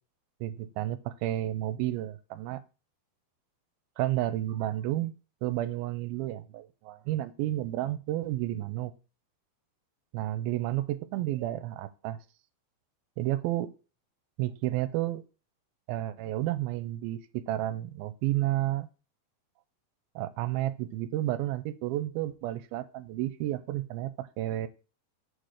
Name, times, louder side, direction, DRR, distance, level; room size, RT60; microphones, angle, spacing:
voice 1, 0.4-2.6 4.0-5.1 5.4-8.9 10.1-12.2 13.2-13.7 14.4-15.2 15.9-18.9 20.2-24.7, right 14 dB, 85° right, 14 dB, 2.4 m, -31 dB
6.5 x 4.0 x 6.5 m, 0.33 s
omnidirectional pair, 4.3 m